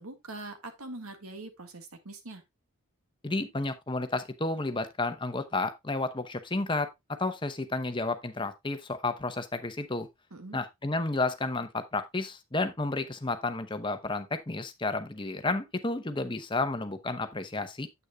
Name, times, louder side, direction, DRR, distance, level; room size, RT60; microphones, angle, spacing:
voice 1, 0.0-2.4 10.3-10.6, right 2 dB, 80° right, 1.8 m, -43 dB
voice 2, 3.2-6.9 7.2-10.1 10.5-17.9, left 2 dB, 20° left, 0.8 m, -31 dB
9.5 x 8.1 x 2.3 m
head